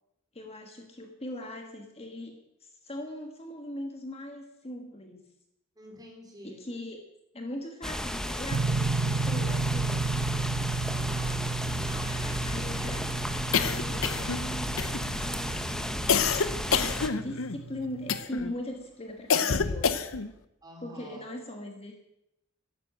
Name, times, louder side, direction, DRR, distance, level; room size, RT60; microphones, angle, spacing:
voice 1, 0.3-5.3 6.4-7.0 7.3-10.0 12.5-13.0 13.5-16.5 16.9-20.1 20.8-22.0, left 1 dB, 30° left, 4 dB, 1.5 m, -40 dB
voice 2, 5.8-6.7 10.9-11.5 11.8-12.9 20.6-21.2, right 1 dB, 20° right, 1 dB, 3.7 m, -47 dB
sound 1, 7.8-17.1, equal, 5° left, 0.9 m, -33 dB
sound 2, 8.5-18.2, right 4 dB, 80° right, 0.5 m, -33 dB
sound 3, 13.5-14.4 14.8-15.3 16.1-17.6 18.1-18.5 19.3-20.3, left 6 dB, 75° left, 0.8 m, -27 dB
12.5 x 11.5 x 7.6 m, 0.85 s
head